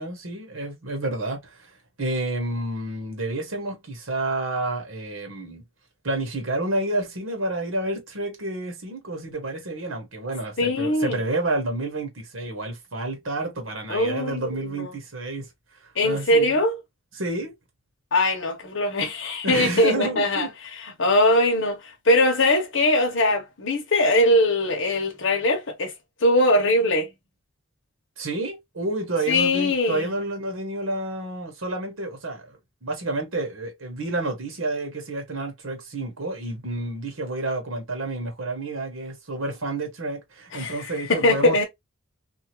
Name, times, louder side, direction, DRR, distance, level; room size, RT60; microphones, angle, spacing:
voice 1, 0.0-1.7 2.0-5.6 6.0-15.5 16.0-16.6 17.2-17.5 19.4-20.5 28.2-41.6, right 2 dB, 85° right, 1.2 m, -29 dB
voice 2, 10.6-11.2 13.9-14.5 14.8-14.9 16.0-16.7 18.1-20.5 20.8-25.9 26.2-27.1 29.3-30.1 40.5-41.6, left 1 dB, 70° left, 0.9 m, -21 dB
2.8 x 2.4 x 3.0 m
head